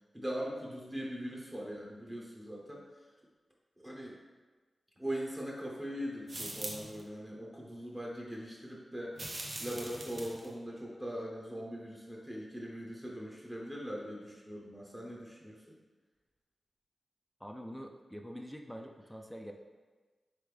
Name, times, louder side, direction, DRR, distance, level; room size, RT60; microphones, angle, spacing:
voice 1, 0.1-2.8 3.8-4.2 5.0-9.2 9.6-15.8, equal, 20° right, -3 dB, 0.9 m, -41 dB
sound 1, 6.3-7.0 9.1-10.5, right 1 dB, 55° right, 0.8 m, -42 dB
voice 2, 17.4-19.5, equal, ahead, 2 dB, 0.4 m, -45 dB
3.7 x 3.4 x 3.3 m, 1.3 s
cardioid pair, 45°, 0 cm